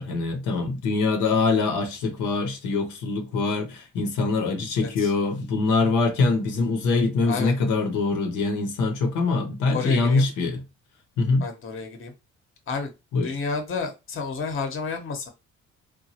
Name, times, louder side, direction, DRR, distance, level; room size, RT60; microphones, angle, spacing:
voice 1, 0.0-10.6 11.2-11.4 13.1-13.4, left 3 dB, 85° left, 0.8 m, -24 dB
voice 2, 4.8-5.1 7.2-7.6 9.7-10.3 11.4-12.1 12.7-12.9 13.2-15.3, left 4 dB, 45° left, 0.9 m, -30 dB
2.9 x 2.2 x 2.8 m
cardioid pair, 90°, 30 cm